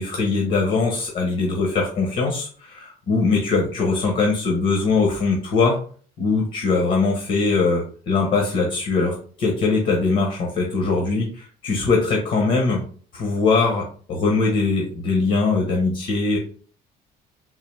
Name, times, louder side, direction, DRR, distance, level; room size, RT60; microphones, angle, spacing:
voice 1, 0.0-5.8 6.2-12.8 13.1-16.4, left 4 dB, 55° left, 0 dB, 1.0 m, -21 dB
3.8 x 2.6 x 3.3 m, 0.44 s
cardioid pair, 110°, 17 cm